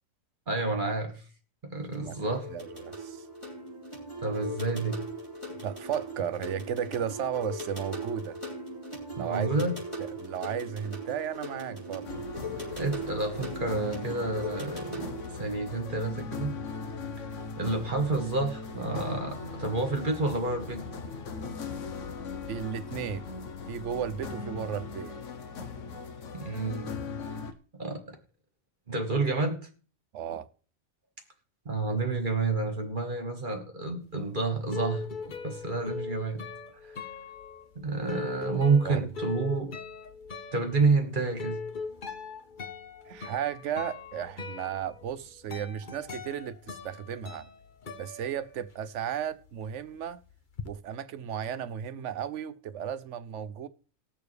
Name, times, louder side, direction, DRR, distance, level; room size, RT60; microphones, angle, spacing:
voice 1, 0.5-1.2 1.6-2.5 4.2-5.0 9.2-9.8 12.7-15.1 15.3-16.5 17.6-20.8 26.3-26.9 27.8-28.2 28.9-29.7 31.7-35.1 35.4-36.4 36.8-36.9 37.8-39.7 40.5-41.6, right 3 dB, 40° right, 1.8 m, -29 dB
sound 1, 1.8-15.4, equal, 20° left, 3.4 m, -39 dB
voice 2, 2.0-3.2 5.6-8.4 9.1-9.5 10.0-12.1 22.0-22.1 22.5-23.3 23.7-25.2 30.1-30.5 38.8-39.0 43.1-47.5 48.0-50.2 50.6-53.7, right 9 dB, 65° right, 1.0 m, -34 dB
sound 2, 12.0-27.5, left 4 dB, 65° left, 1.3 m, -39 dB
sound 3, 34.2-49.0 49.2-50.7, left 5 dB, 40° left, 1.0 m, -41 dB
20.0 x 6.7 x 3.3 m
omnidirectional pair, 1.4 m